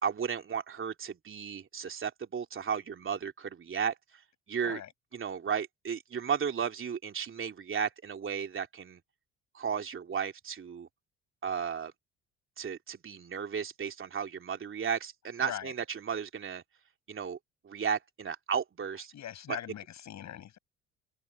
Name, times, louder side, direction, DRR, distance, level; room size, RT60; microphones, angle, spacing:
voice 1, 0.0-3.9 4.5-4.8 5.1-9.0 9.5-10.9 11.4-11.9 12.6-16.6 17.1-17.4 17.6-19.1 19.5-19.6, right 7 dB, 35° right, 3.1 m, -34 dB
voice 2, 15.4-15.7 19.1-20.6, left 10 dB, 50° left, 7.7 m, -41 dB
hypercardioid pair, 55°, 35 cm